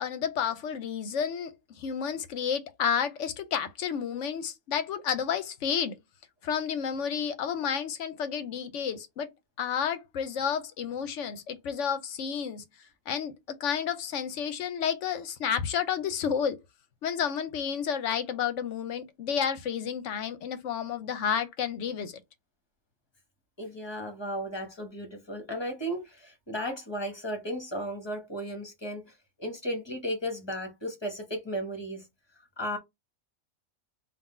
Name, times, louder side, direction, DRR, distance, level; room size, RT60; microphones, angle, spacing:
voice 1, 0.0-6.0 6.4-9.3 9.6-12.6 13.1-16.6 17.0-22.2, left 7 dB, 65° left, 0.9 m, -31 dB
voice 2, 23.6-32.1 32.6-32.8, equal, 20° left, 1.0 m, -35 dB
3.8 x 2.5 x 4.2 m
omnidirectional pair, 1.5 m